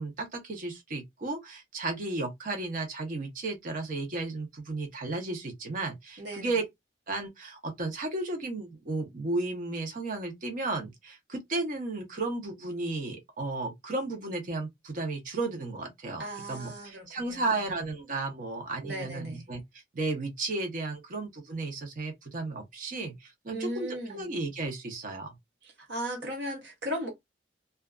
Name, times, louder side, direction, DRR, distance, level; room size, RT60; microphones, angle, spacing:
voice 1, 0.0-6.6 7.1-16.2 16.5-19.6 19.9-25.3, right 2 dB, 50° right, 0.7 m, -34 dB
voice 2, 6.2-6.6 16.2-17.7 18.8-19.5 23.5-24.3 25.6-27.1, right 1 dB, 75° right, 1.2 m, -37 dB
2.4 x 2.3 x 2.3 m
head